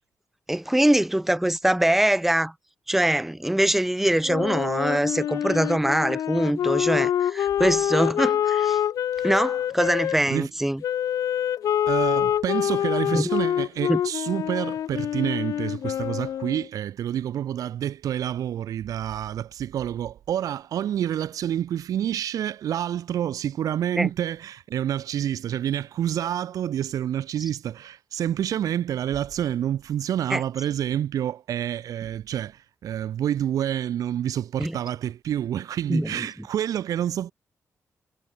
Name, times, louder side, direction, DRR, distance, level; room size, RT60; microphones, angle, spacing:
voice 1, 0.5-2.5 2.9-8.8 9.2-10.8 13.1-13.3 13.9-14.0 24.0-24.1 30.3-30.4 34.6-34.8 35.9-36.1, right 1 dB, 5° right, 0.9 m, -23 dB
Wind instrument woodwind instrument, 4.2-10.2 10.8-16.7, left 10 dB, 80° left, 1.0 m, -26 dB
voice 2, 11.9-37.3, right 10 dB, 80° right, 1.1 m, -28 dB
wide cardioid pair, 155°, 6 cm